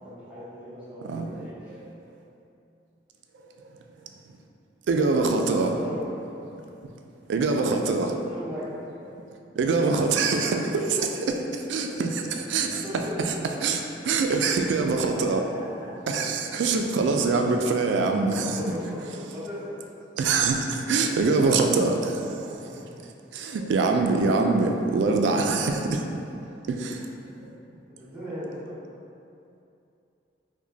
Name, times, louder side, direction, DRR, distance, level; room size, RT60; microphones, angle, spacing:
voice 1, 0.0-1.8 5.8-6.0 8.3-8.7 10.3-10.4 12.5-13.1 15.0-15.4 15.8-15.9 18.2-19.6 22.2-22.9 26.9-27.0 28.0-28.8, left 1 dB, 5° right, -12 dB, 0.9 m, -39 dB
voice 2, 4.9-5.8 7.3-8.2 9.1-9.2 9.6-11.1 11.5-12.8 13.2-13.3 13.6-15.4 16.1-18.6 20.2-22.3 23.3-26.1 26.7-27.1, right 4 dB, 85° right, 4 dB, 0.3 m, -24 dB
4.8 x 2.1 x 2.7 m, 2.7 s
head